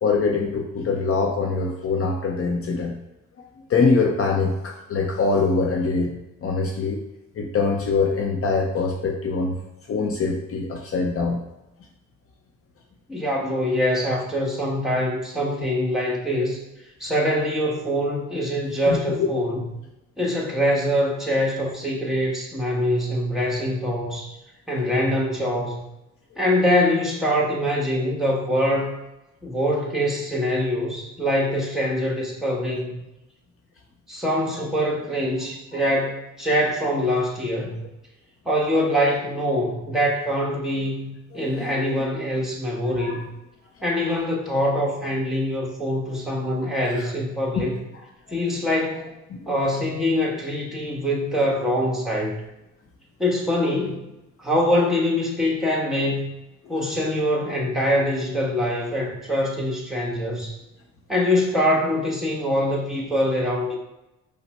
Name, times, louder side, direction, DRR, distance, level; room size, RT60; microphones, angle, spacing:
voice 1, 0.0-2.9 3.7-6.2 6.4-7.0 7.3-9.6 9.9-11.4 18.9-19.4 34.5-34.6 41.3-41.7 42.9-43.2 44.1-44.2 46.5-46.6 47.0-47.1 47.5-47.6 49.3-49.5 56.6-56.8, left 4 dB, 50° left, 1 dB, 0.7 m, -23 dB
voice 2, 13.1-16.6 17.0-19.6 20.2-24.4 24.7-25.8 26.4-28.9 29.4-33.0 34.1-37.9 38.4-43.3 43.8-47.8 48.3-49.1 49.5-52.4 53.2-54.1 54.4-56.3 56.7-60.6 61.1-63.8, equal, ahead, -4 dB, 1.4 m, -24 dB
5.7 x 2.1 x 4.3 m, 0.95 s
cardioid pair, 90°, 30 cm